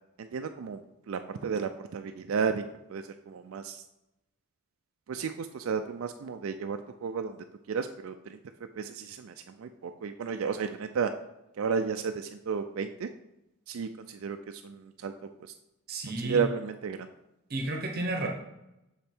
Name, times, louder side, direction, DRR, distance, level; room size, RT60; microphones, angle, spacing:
voice 1, 0.2-2.6 2.9-3.8 5.1-8.4 8.8-11.1 11.5-13.1 13.7-15.1 15.4-15.5 16.2-17.1, right 6 dB, 70° right, 7 dB, 0.4 m, -33 dB
voice 2, 15.9-16.4 17.5-18.3, right 2 dB, 45° right, 2 dB, 0.9 m, -32 dB
6.4 x 5.2 x 4.4 m, 0.91 s
head